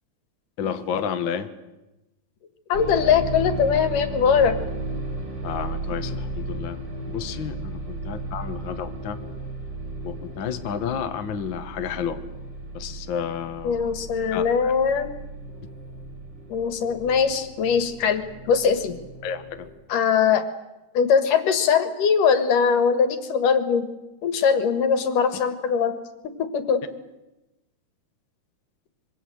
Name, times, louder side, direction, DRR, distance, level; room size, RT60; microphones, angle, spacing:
voice 1, 0.6-1.5 5.4-6.8 7.1-9.2 10.0-12.2 12.7-13.8 14.3-14.7 19.2-19.7, left 7 dB, 50° left, 8 dB, 1.5 m, -31 dB
voice 2, 2.7-4.6 13.6-15.2 16.5-19.0 19.9-20.4 20.9-23.9 24.2-25.9 26.4-26.8, left 6 dB, 75° left, 10 dB, 3.2 m, -21 dB
sound 1, 2.7-19.7, right 2 dB, 30° right, 5.4 m, -35 dB
25.5 x 23.5 x 7.9 m, 1.0 s
omnidirectional pair, 3.8 m